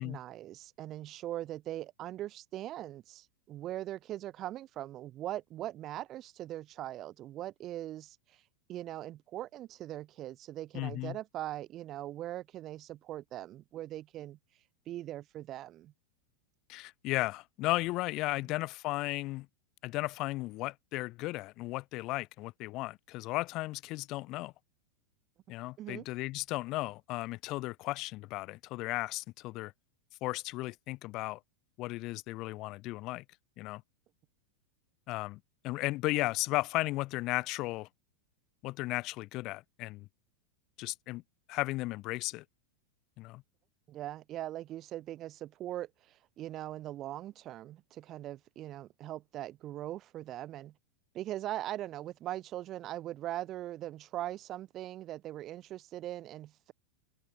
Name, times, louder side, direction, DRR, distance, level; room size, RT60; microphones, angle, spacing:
voice 1, 0.0-8.4 8.7-14.4 14.9-15.9 25.8-26.0 43.9-50.7 51.1-56.7, right 13 dB, 35° right, 0.5 m, -41 dB
voice 2, 10.7-11.2 16.7-19.5 19.8-24.5 25.5-29.7 30.2-31.4 31.8-33.2 33.6-33.8 35.1-37.9 38.6-40.1 40.8-41.2 41.5-42.4 43.2-43.4, left 20 dB, 40° left, 0.4 m, -35 dB
open air
figure-of-eight pair, 90°, 0 cm